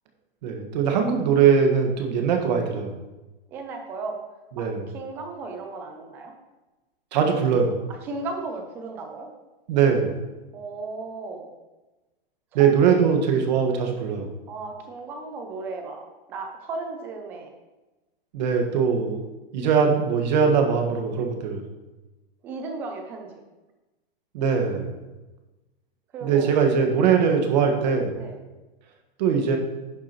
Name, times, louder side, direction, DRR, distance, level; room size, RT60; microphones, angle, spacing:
voice 1, 0.4-2.9 4.6-4.8 7.1-7.8 9.7-10.1 12.5-14.3 18.3-19.2 19.5-21.6 24.3-25.0 26.2-28.2 29.2-29.6, right 6 dB, 45° right, 3 dB, 1.6 m, -21 dB
voice 2, 3.5-4.2 4.6-4.7 4.9-6.3 8.0-9.3 10.5-11.5 12.6-12.8 14.5-17.5 22.4-23.3 26.1-26.5 27.0-27.1 28.2-28.4, right 3 dB, 10° right, 4 dB, 0.3 m, -35 dB
11.0 x 7.2 x 3.0 m, 1.1 s
hypercardioid pair, 165°, 30 cm